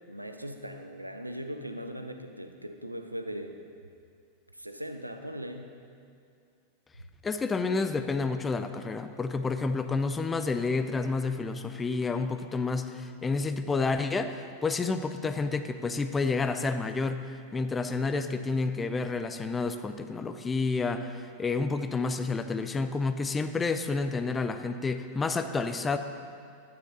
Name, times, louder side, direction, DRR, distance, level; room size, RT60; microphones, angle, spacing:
voice 1, 0.1-3.5 4.5-5.7, equal, 85° right, 6 dB, 0.7 m, -39 dB
voice 2, 7.2-26.0, left 4 dB, 15° left, 9 dB, 0.5 m, -30 dB
12.0 x 9.7 x 4.0 m, 2.3 s
figure-of-eight pair, 90°, 0 cm